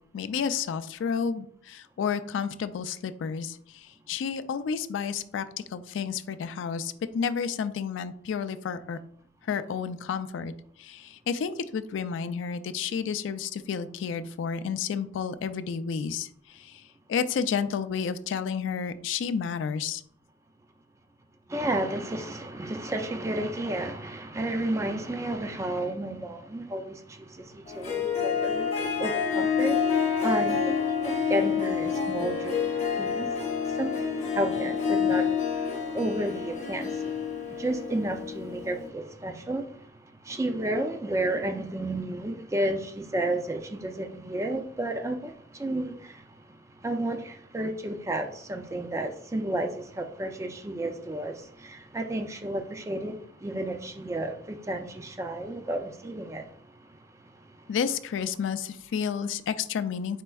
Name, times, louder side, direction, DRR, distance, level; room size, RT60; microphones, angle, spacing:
voice 1, 0.1-9.0 9.5-10.5 10.8-16.8 17.1-20.0 57.7-60.2, left 6 dB, 85° left, 0.3 m, -31 dB
voice 2, 21.5-35.7 35.9-39.8 40.2-46.2 46.8-56.5, right 1 dB, 15° right, 0.3 m, -32 dB
Harp, 27.7-38.9, left 6 dB, 35° left, 0.7 m, -28 dB
4.4 x 4.1 x 2.3 m
head